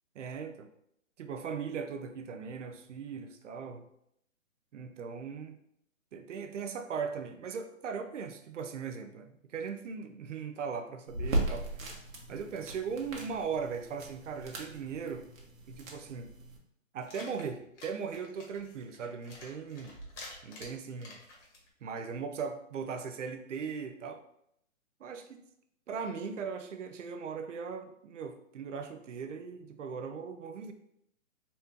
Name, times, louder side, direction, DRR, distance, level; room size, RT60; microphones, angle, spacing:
voice 1, 0.2-0.7 1.2-3.9 4.7-5.5 6.1-11.9 12.3-15.3 15.7-16.3 16.9-20.0 20.4-21.2 21.8-24.2 25.0-25.4 25.9-30.7, right 6 dB, 65° right, 6 dB, 0.7 m, -39 dB
sound 1, 11.1-16.6, right 1 dB, 80° right, 1.3 m, -38 dB
sound 2, 17.0-21.7, left 2 dB, 60° left, 1.6 m, -49 dB
4.2 x 2.7 x 3.6 m, 0.73 s
hypercardioid pair, 155°, 40 cm